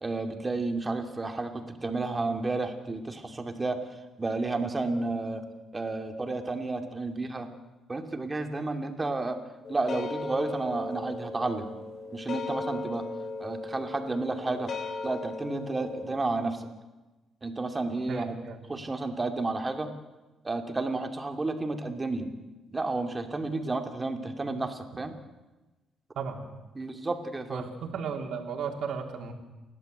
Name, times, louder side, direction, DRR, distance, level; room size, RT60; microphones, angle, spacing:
voice 1, 0.0-3.8 4.2-5.4 5.7-7.5 7.9-9.4 9.7-11.7 12.1-13.1 13.4-14.7 15.0-16.7 17.4-18.4 18.7-19.9 20.4-22.3 22.7-25.1 26.8-27.6, right 3 dB, 25° right, 5 dB, 2.7 m, -31 dB
sound 1, 9.6-16.2, left 3 dB, 50° left, 3.9 m, -37 dB
voice 2, 18.1-18.6 26.1-26.4 27.5-29.3, right 6 dB, 70° right, 3 dB, 3.2 m, -35 dB
30.0 x 12.0 x 8.0 m, 1.1 s
cardioid pair, 90°, 0 cm